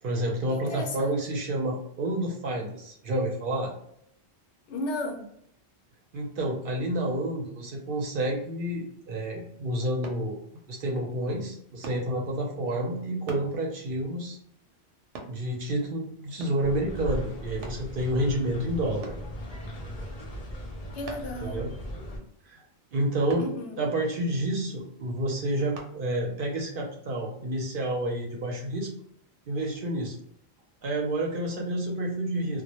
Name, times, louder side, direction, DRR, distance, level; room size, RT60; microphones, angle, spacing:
voice 1, 0.0-3.7 6.1-10.4 10.7-14.4 15.2-19.1 21.4-21.7 22.5-22.6 22.9-23.5 23.8-28.9 29.5-30.2 30.8-32.6, right 1 dB, 60° right, -1 dB, 0.7 m, -29 dB
voice 2, 0.5-1.2 4.7-5.3 20.9-21.7 23.4-23.8, left 2 dB, 80° left, 2 dB, 0.9 m, -34 dB
sound 1, 10.0-10.3 11.8-12.1 13.3-13.5 15.1-15.4 16.4-16.7 17.6-17.9 19.0-19.3 21.1-21.4 23.3-23.5 25.8-25.9 26.5-26.6, right 3 dB, 90° right, 0.9 m, -41 dB
sound 2, 16.6-22.2, equal, 50° left, 0.5 m, -38 dB
2.2 x 2.1 x 2.7 m, 0.70 s
omnidirectional pair, 1.2 m